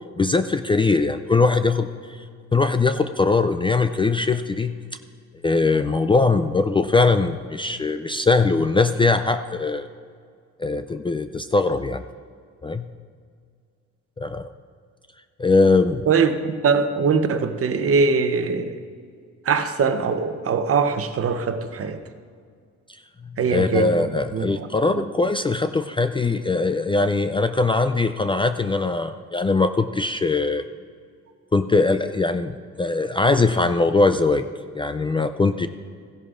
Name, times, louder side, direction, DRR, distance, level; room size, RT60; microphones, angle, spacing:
voice 1, 0.2-2.2 2.5-4.7 5.4-9.9 10.6-12.0 12.6-12.9 14.2-14.5 15.4-16.1 23.5-30.6 31.5-34.5 34.7-35.7, left 3 dB, 15° left, 9 dB, 0.3 m, -21 dB
voice 2, 16.1-18.8 19.4-22.0 23.4-24.7 24.9-25.1, right 5 dB, 50° right, 8 dB, 0.9 m, -22 dB
16.5 x 11.0 x 2.5 m, 2.1 s
cardioid pair, 90°, 30 cm